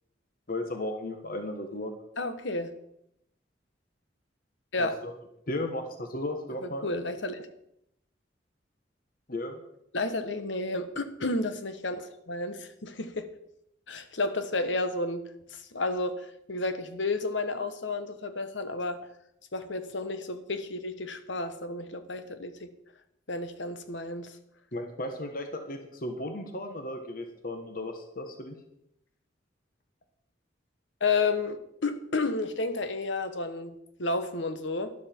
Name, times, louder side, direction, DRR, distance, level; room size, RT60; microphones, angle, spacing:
voice 1, 0.5-1.9 4.8-5.1 5.5-6.9 9.3-9.6 24.7-28.6, left 1 dB, 50° left, 6 dB, 1.4 m, -35 dB
voice 2, 2.2-2.7 4.7-4.9 6.6-7.5 9.9-13.3 13.9-19.1 19.5-22.7 23.3-24.4 31.0-34.9, left 3 dB, 80° left, 9 dB, 1.3 m, -31 dB
12.5 x 12.0 x 4.6 m, 0.79 s
head